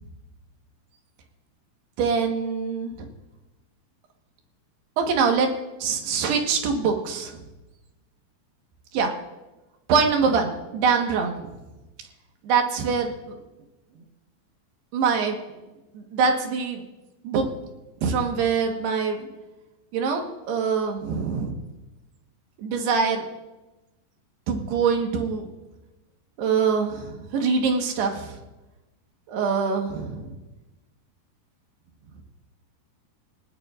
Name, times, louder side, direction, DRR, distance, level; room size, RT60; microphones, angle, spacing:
voice 1, 2.0-3.1 5.0-5.5 5.8-7.4 9.0-9.1 9.9-11.5 12.4-13.4 14.9-15.4 15.9-16.8 17.2-17.5 18.0-19.3 19.9-21.6 22.6-23.3 24.5-25.5 26.4-28.4 29.3-30.3, right 5 dB, 75° right, 3 dB, 3.4 m, -24 dB
28.5 x 16.5 x 2.5 m, 1.1 s
omnidirectional pair, 4.8 m